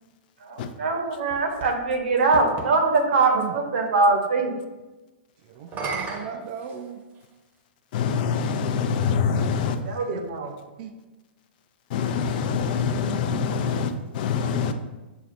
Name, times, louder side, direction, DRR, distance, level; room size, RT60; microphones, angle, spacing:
voice 1, 0.4-4.5 9.9-10.5, right 3 dB, 70° right, 3 dB, 0.8 m, -22 dB
sound 1, 0.9-2.8 5.6-7.3 8.3-8.4 12.1-13.6, right 4 dB, 30° right, 0.7 m, -37 dB
voice 2, 5.4-7.0 9.8-10.2 10.8-10.9 14.6-14.7, right 8 dB, 50° right, 5 dB, 0.4 m, -37 dB
voice 3, 7.9-9.8 11.9-14.7, left 6 dB, 50° left, 8 dB, 0.4 m, -25 dB
6.8 x 2.3 x 2.5 m, 1.1 s
hypercardioid pair, 115°, 6 cm